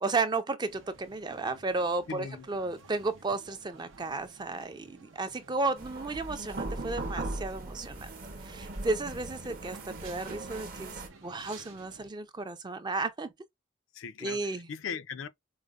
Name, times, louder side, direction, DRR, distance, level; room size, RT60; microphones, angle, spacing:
voice 1, 0.0-8.1 8.4-13.3 14.2-14.7, right 3 dB, 20° right, 0.4 m, -33 dB
sound 1, 0.7-12.1, right 3 dB, 85° right, 0.8 m, -54 dB
voice 2, 2.1-2.5 13.9-15.3, left 6 dB, 85° left, 0.5 m, -39 dB
sound 2, 5.8-11.1, right 2 dB, 45° right, 0.8 m, -39 dB
4.7 x 2.0 x 2.4 m
head